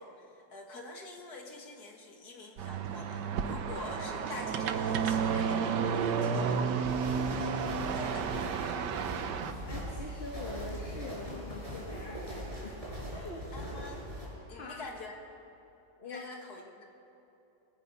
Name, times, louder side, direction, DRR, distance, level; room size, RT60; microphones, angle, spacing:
voice 1, 0.0-6.7 7.3-8.3 13.5-14.0 14.5-15.2 16.0-16.8, left 2 dB, 60° left, 2 dB, 2.4 m, -46 dB
sound 1, 2.6-9.5, right 6 dB, 75° right, 1.5 m, -31 dB
sound 2, 6.8-14.3, equal, 20° right, 6.0 m, -41 dB
voice 2, 8.8-12.8 13.1-13.5 14.5-14.8 16.0-16.2, left 2 dB, 35° left, 0 dB, 1.8 m, -44 dB
27.5 x 18.0 x 5.5 m, 2.9 s
omnidirectional pair, 1.9 m